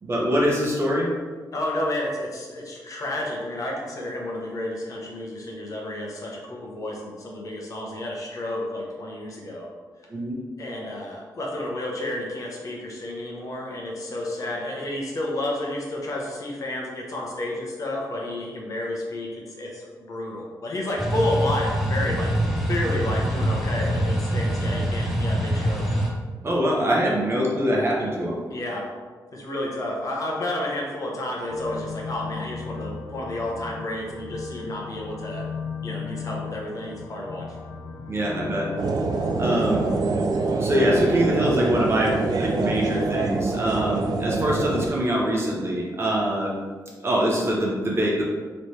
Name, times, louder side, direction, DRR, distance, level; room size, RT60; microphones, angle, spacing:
voice 1, 0.0-1.1 10.1-10.4 26.4-28.4 38.1-38.7 39.4-39.8 40.6-46.5 47.0-48.2, equal, 35° right, -3 dB, 1.0 m, -23 dB
voice 2, 1.5-9.7 10.6-22.3 22.7-25.9 28.5-28.9 29.3-35.4 35.8-37.6 39.6-39.8, left 1 dB, 50° left, -2 dB, 0.9 m, -31 dB
sound 1, 21.0-26.1, right 1 dB, ahead, 0.8 m, -24 dB
sound 2, 31.5-39.9, left 5 dB, 75° left, 0.4 m, -37 dB
sound 3, 38.8-44.9, right 3 dB, 60° right, 0.4 m, -25 dB
3.2 x 3.2 x 4.2 m, 1.5 s
cardioid pair, 95°, 7 cm